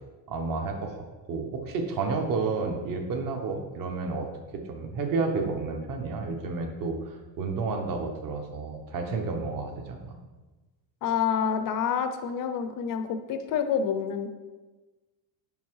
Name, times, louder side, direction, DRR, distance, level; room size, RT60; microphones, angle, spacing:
voice 1, 0.3-0.9 1.3-10.2, right 4 dB, 45° right, 4 dB, 1.1 m, -31 dB
voice 2, 11.0-14.3, left 7 dB, 45° left, 8 dB, 0.7 m, -28 dB
5.6 x 5.3 x 4.7 m, 1.2 s
cardioid pair, 130°, 48 cm